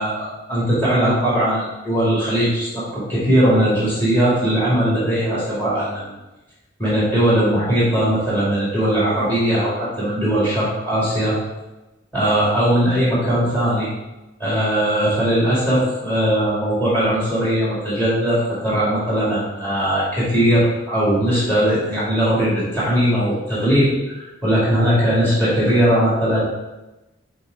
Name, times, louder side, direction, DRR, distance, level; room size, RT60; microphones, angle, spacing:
voice 1, 0.0-2.8 3.1-6.1 6.8-11.4 12.1-13.9 14.4-26.4, equal, 10° left, -9 dB, 2.4 m, -19 dB
6.7 x 3.9 x 4.7 m, 1.0 s
head